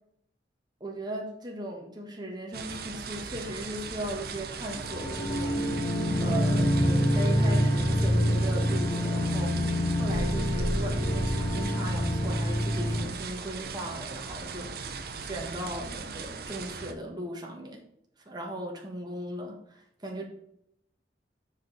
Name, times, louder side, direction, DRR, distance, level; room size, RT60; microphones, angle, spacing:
voice 1, 0.8-9.6 10.0-17.8 18.3-20.2, right 1 dB, 25° right, 0 dB, 1.6 m, -38 dB
sound 1, 2.5-16.9, right 3 dB, 60° right, 0.9 m, -37 dB
sound 2, 4.7-13.0, equal, 35° left, 3.7 m, -26 dB
6.4 x 5.3 x 6.4 m, 0.73 s
head